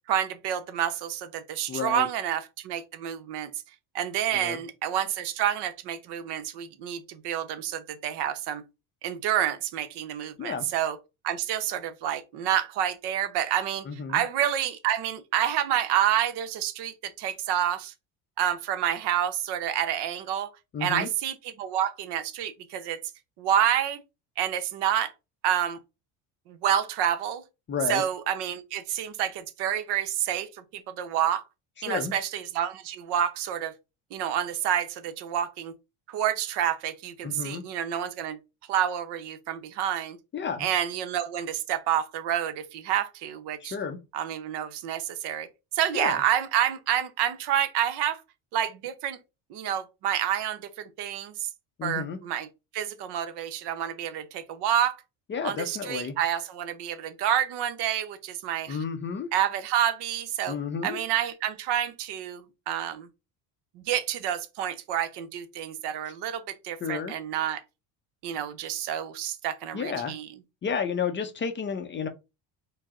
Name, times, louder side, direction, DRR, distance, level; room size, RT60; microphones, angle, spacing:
voice 1, 0.1-3.5 3.9-8.6 9.0-11.0 11.2-17.9 18.4-20.5 20.8-23.0 23.4-24.0 24.4-25.1 25.4-25.8 26.5-27.4 27.9-31.4 31.8-33.7 34.1-35.7 36.1-38.4 38.7-40.2 40.6-43.8 44.1-45.5 45.7-48.2 48.5-49.2 49.5-51.5 51.8-52.5 52.7-55.0 55.4-58.8 59.3-60.6 60.8-63.1 63.7-67.6 68.2-70.3, right 10 dB, 65° right, 0.8 m, -28 dB
voice 2, 1.7-2.1 4.3-4.6 10.4-10.7 13.9-14.2 20.7-21.1 27.7-28.0 31.8-32.1 37.2-37.6 40.3-40.7 43.6-44.0 45.9-46.2 51.8-52.2 55.3-56.2 58.7-59.3 60.5-61.0 66.8-67.1 69.7-70.2 70.6-72.1, left 6 dB, 25° left, 0.5 m, -31 dB
4.6 x 2.0 x 3.6 m
cardioid pair, 110°, 44 cm